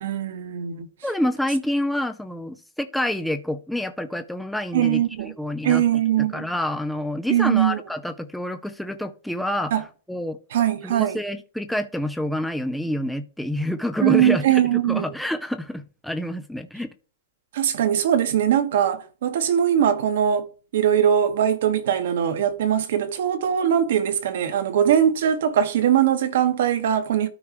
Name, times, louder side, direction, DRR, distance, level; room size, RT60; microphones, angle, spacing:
voice 1, 0.0-0.9 4.7-5.3 5.6-6.5 7.3-7.8 9.7-9.8 10.5-11.2 14.0-15.1 17.5-20.5 20.7-27.3, right 10 dB, 65° right, 1.3 m, -21 dB
voice 2, 1.0-5.8 6.2-9.7 10.1-10.4 10.8-16.9, left 1 dB, ahead, 0.5 m, -28 dB
13.0 x 4.7 x 3.0 m
hypercardioid pair, 145°, 0 cm